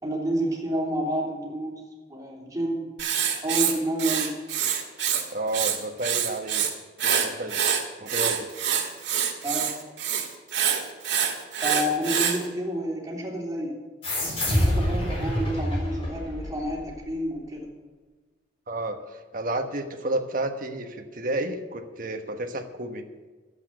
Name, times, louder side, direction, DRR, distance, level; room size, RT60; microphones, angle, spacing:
voice 1, 0.0-1.8 2.1-2.9 3.4-4.4 9.4-9.7 11.6-13.8 14.5-17.7, equal, 20° right, -3 dB, 3.1 m, -29 dB
Writing, 3.0-5.2 5.5-6.7 7.0-12.4, right 8 dB, 80° right, 2.0 m, -25 dB
voice 2, 5.3-6.6 7.0-7.6 8.0-8.5 18.7-19.0 19.3-23.0, right 2 dB, 50° right, 5 dB, 1.3 m, -31 dB
sound 1, 14.0-17.1, equal, 35° left, 3.7 m, -27 dB
11.5 x 8.2 x 7.7 m, 1.3 s
head